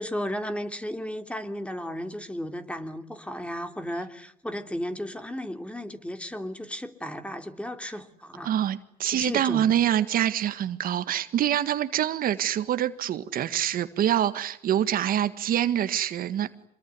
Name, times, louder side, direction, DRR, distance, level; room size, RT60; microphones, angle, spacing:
voice 1, 0.0-8.5 9.1-9.7, equal, 10° left, 3.2 m, -34 dB
voice 2, 8.4-16.5, right 11 dB, 75° right, 1.7 m, -25 dB
27.0 x 21.5 x 9.7 m
supercardioid pair, 70°, 15 cm